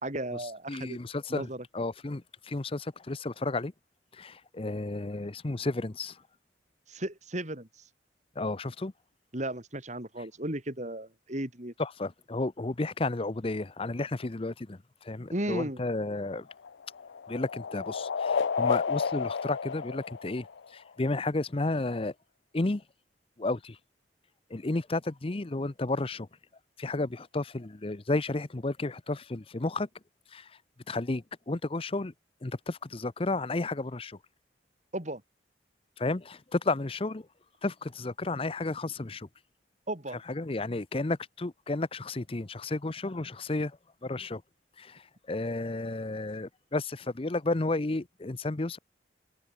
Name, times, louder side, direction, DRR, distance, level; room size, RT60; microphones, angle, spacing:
voice 1, 0.0-1.0 1.3-1.6 6.9-7.9 9.3-11.7 15.3-15.8 34.9-35.2 39.9-40.2, right 1 dB, 40° right, 3.9 m, -35 dB
voice 2, 0.7-1.5 1.7-3.7 4.1-6.2 8.4-8.9 11.8-16.5 17.3-20.5 20.7-22.1 22.5-22.8 23.4-23.8 24.5-26.3 26.8-29.9 30.3-30.5 30.9-32.1 32.4-34.2 36.0-37.3 37.6-39.3 40.3-43.8 44.0-44.4 44.8-45.0 45.3-48.8, left 2 dB, 30° left, 0.7 m, -32 dB
sound 1, 16.2-20.9, left 5 dB, 80° left, 0.5 m, -31 dB
head